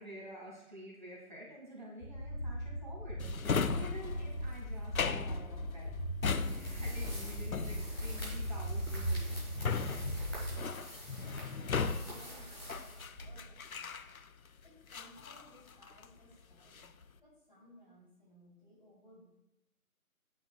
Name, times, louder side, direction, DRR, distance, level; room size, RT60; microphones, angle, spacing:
voice 1, 0.0-5.9 6.4-9.4, equal, 30° right, -4 dB, 1.8 m, -49 dB
sound 1, 2.0-10.6, equal, 90° left, 1.3 m, -38 dB
Drawer open or close, 3.2-14.5 14.9-16.2 16.5-17.0, left 5 dB, 70° left, 0.6 m, -38 dB
sound 2, 6.4-13.5, equal, 15° left, 1.5 m, -48 dB
voice 2, 11.1-13.9 14.6-16.9 17.2-19.2, left 1 dB, 35° left, -4 dB, 3.1 m, -60 dB
9.0 x 8.4 x 2.2 m, 0.87 s
figure-of-eight pair, 175°, 44 cm